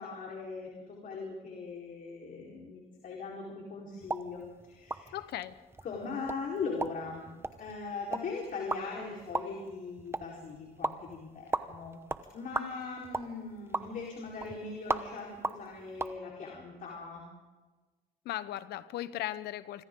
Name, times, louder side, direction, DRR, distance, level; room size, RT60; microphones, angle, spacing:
voice 1, 0.0-5.2 5.8-12.0 12.3-17.3, left 4 dB, 55° left, -2 dB, 4.5 m, -40 dB
sound 1, 4.0-16.2, right 3 dB, 15° right, 1.0 m, -39 dB
voice 2, 5.1-5.6 18.2-19.8, left 13 dB, 75° left, 14 dB, 1.1 m, -37 dB
26.0 x 25.5 x 3.9 m, 1.3 s
cardioid pair, 110°, 17 cm